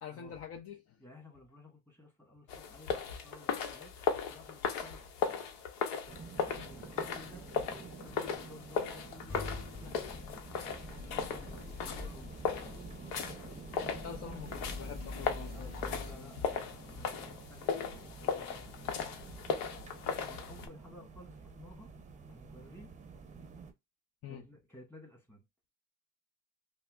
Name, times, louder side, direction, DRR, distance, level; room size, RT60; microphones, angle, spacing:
voice 1, 0.0-1.0 14.0-16.3 24.2-24.4, left 8 dB, 45° left, 0.6 m, -46 dB
voice 2, 1.0-5.5 6.4-10.5 11.0-12.9 15.5-19.6 20.3-21.9 22.3-22.9 24.3-25.4, left 1 dB, 5° left, 1.6 m, -55 dB
sound 1, 2.5-20.7, left 6 dB, 90° left, 0.8 m, -37 dB
sound 2, 6.1-23.7, right 5 dB, 20° right, 0.6 m, -50 dB
sound 3, 9.3-16.1, left 3 dB, 30° left, 1.9 m, -45 dB
5.5 x 2.0 x 2.4 m
cardioid pair, 100°, 32 cm